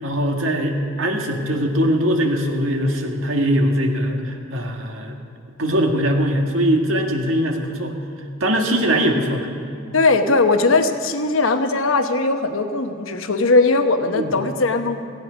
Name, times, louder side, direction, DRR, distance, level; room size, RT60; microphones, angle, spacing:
voice 1, 0.0-5.2 5.6-7.9 8.4-9.5 14.1-14.4, equal, 80° right, 2 dB, 1.8 m, -21 dB
voice 2, 9.9-15.0, left 3 dB, 80° left, 7 dB, 1.1 m, -19 dB
17.5 x 15.0 x 5.1 m, 2.5 s
head